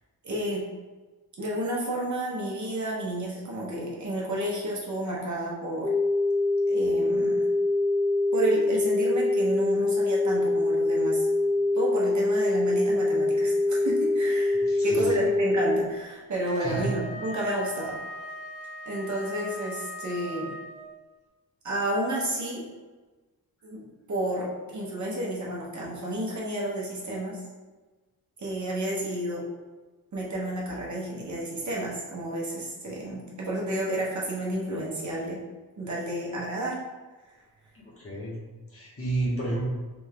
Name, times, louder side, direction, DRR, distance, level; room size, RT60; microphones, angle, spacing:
voice 1, 0.2-0.6 1.4-5.9 6.7-7.5 8.3-11.3 11.7-18.0 18.9-20.5 21.6-22.7 23.6-23.8 24.1-27.4 28.4-29.4 30.1-35.4 35.8-36.8, right 1 dB, 50° right, -4 dB, 1.0 m, -31 dB
sound 1, 5.8-15.8, left 2 dB, 25° right, 0.5 m, -24 dB
voice 2, 14.7-15.2 16.6-16.8 37.7-38.3 38.7-39.6, right 2 dB, 35° left, -7 dB, 1.3 m, -31 dB
Wind instrument woodwind instrument, 16.4-21.0, equal, 70° right, 0.9 m, -40 dB
3.4 x 3.4 x 3.4 m, 1.3 s
wide cardioid pair, 165°, 37 cm